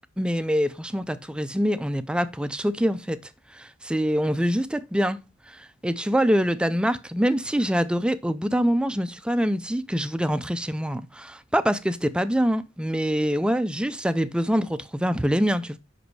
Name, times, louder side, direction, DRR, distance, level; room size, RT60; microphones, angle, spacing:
voice 1, 0.2-3.2 3.5-5.2 5.5-15.8, equal, 5° right, 0.4 m, -25 dB
6.1 x 5.1 x 4.7 m
head